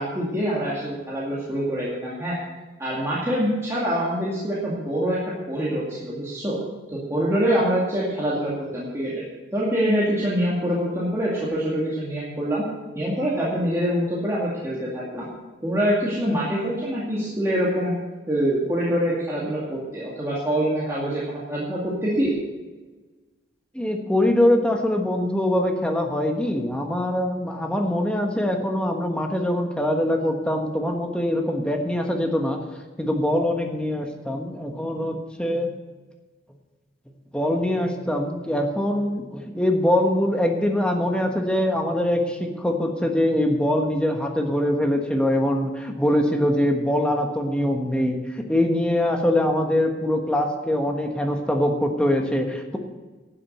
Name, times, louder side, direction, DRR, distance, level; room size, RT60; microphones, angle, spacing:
voice 1, 0.0-2.4 2.8-6.6 6.9-9.2 9.5-12.6 12.9-15.3 15.6-17.9 18.3-22.3, equal, 15° right, -7 dB, 2.3 m, -25 dB
voice 2, 23.7-32.6 33.0-35.7 37.3-52.8, left 1 dB, 5° left, 3 dB, 1.3 m, -23 dB
12.0 x 7.5 x 7.9 m, 1.3 s
head